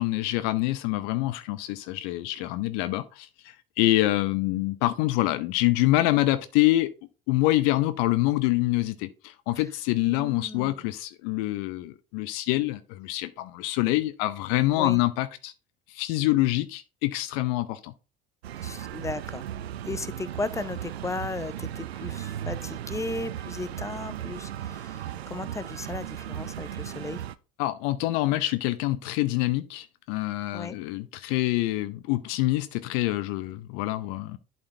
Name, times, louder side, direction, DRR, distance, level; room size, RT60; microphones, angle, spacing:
voice 1, 0.0-6.9 7.3-15.5 15.9-17.9 27.6-34.4, left 17 dB, 55° left, 0.6 m, -26 dB
voice 2, 10.1-10.8 14.8-15.0 18.6-19.4 19.8-27.2 30.5-30.8, left 3 dB, 10° left, 0.6 m, -36 dB
sound 1, 18.4-27.4, right 11 dB, 80° right, 0.5 m, -36 dB
11.5 x 4.3 x 2.7 m
figure-of-eight pair, 60°, 31 cm